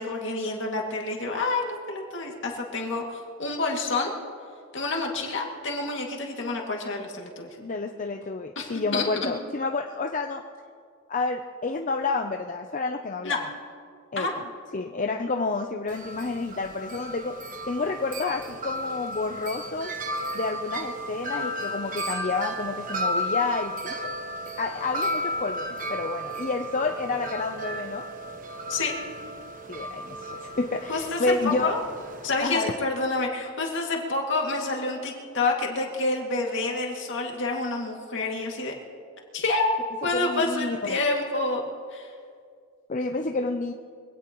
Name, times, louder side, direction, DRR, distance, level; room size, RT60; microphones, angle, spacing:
voice 1, 0.0-4.1 4.7-7.5 8.6-9.4 13.2-13.4 14.2-14.3 28.7-28.9 30.9-31.8 32.2-38.7 39.3-39.7 40.0-41.6 41.9-42.1, left 3 dB, 60° left, 0 dB, 2.3 m, -28 dB
voice 2, 7.6-10.4 11.1-13.5 14.1-14.4 14.7-17.3 17.7-19.9 20.3-24.1 24.6-28.0 29.7-31.7 32.4-32.7 40.1-40.8 42.9-43.7, left 3 dB, 35° left, 4 dB, 0.6 m, -29 dB
Wind chime, 15.9-32.4, equal, 40° right, 1.1 m, -34 dB
24.0 x 17.5 x 3.1 m, 2.2 s
head